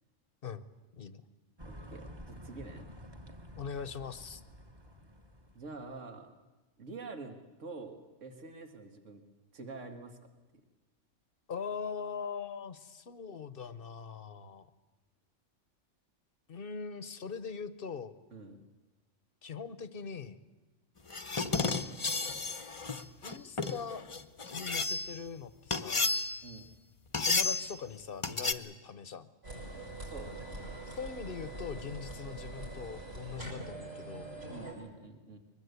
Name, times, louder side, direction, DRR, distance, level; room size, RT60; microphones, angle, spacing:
sound 1, 1.6-5.9, equal, 20° right, 1.3 m, -50 dB
voice 1, 1.6-2.9 5.5-6.3 6.8-9.2 9.5-10.2 18.3-18.6 26.4-26.7 30.0-30.5 34.5-35.4, right 3 dB, 75° right, 5 dB, 2.2 m, -46 dB
voice 2, 3.6-4.4 11.5-14.7 16.5-18.1 19.4-20.4 23.2-24.0 24.5-26.1 27.2-29.3 30.9-34.3, left 6 dB, 50° left, 14 dB, 1.1 m, -41 dB
sound 2, 21.1-25.2 25.7-26.6 27.1-27.7 28.2-28.5, left 3 dB, 30° left, 0.8 m, -32 dB
sound 3, 29.4-34.7, right 2 dB, 55° right, 6.9 m, -43 dB
22.5 x 21.0 x 8.2 m, 1.1 s
omnidirectional pair, 1.3 m